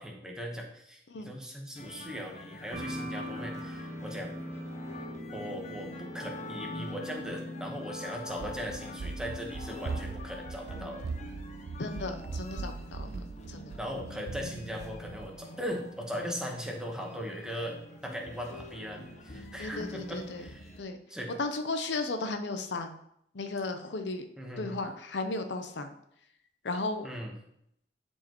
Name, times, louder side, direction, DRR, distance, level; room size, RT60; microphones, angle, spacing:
voice 1, 0.0-1.0 1.2-4.3 5.3-11.0 13.0-13.3 13.8-17.8 18.0-20.7 21.1-21.3 24.4-24.8 27.0-27.3, equal, 5° right, 0 dB, 1.1 m, -39 dB
sound 1, 1.8-20.8, left 1 dB, 40° left, 0.8 m, -46 dB
sound 2, 2.7-12.2, left 1 dB, 20° right, 1.6 m, -43 dB
Run, 8.3-15.3, right 4 dB, 60° right, 0.4 m, -40 dB
voice 2, 11.8-13.1 13.5-13.7 19.6-20.4 20.8-21.0 21.4-23.0 23.3-24.3 24.6-25.9 26.6-27.1, left 3 dB, 75° left, 7 dB, 0.6 m, -35 dB
10.5 x 4.6 x 3.0 m, 0.75 s
head